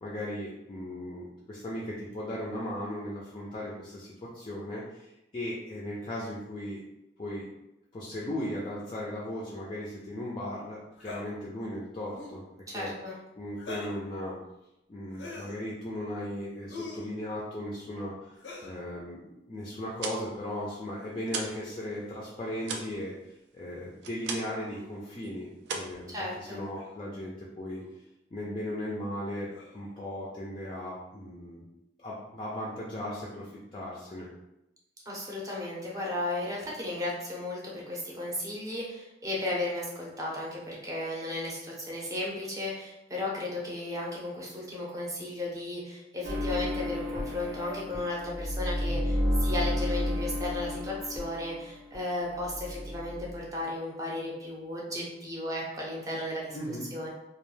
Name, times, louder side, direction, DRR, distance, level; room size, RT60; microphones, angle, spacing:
voice 1, 0.0-5.1 5.3-6.8 7.2-7.5 7.9-12.4 12.7-12.9 13.4-14.4 14.9-18.4 18.6-23.1 23.5-27.8 28.3-29.5 29.7-31.6 32.0-34.3 56.5-56.9, left 1 dB, 30° left, -5 dB, 0.4 m, -37 dB
sound 1, 11.0-11.2 12.1-12.4 13.6-14.0 15.1-15.6 16.7-17.1 18.4-18.8 20.1-20.3 21.4-21.6 22.6-23.1 24.7-24.9 25.9-26.0 26.7-27.0 27.8-27.9 29.5-29.9, left 3 dB, 90° left, 0.5 m, -44 dB
voice 2, 12.7-13.1 26.1-26.6 35.1-57.1, left 1 dB, 20° right, -4 dB, 0.6 m, -35 dB
sound 2, 19.9-21.7 22.0-24.7 25.0-25.3 25.6-26.7, right 4 dB, 70° right, 0.4 m, -38 dB
sound 3, 46.2-52.0 52.2-53.4, left 1 dB, 85° right, 0.8 m, -32 dB
2.2 x 2.1 x 3.1 m, 0.91 s
head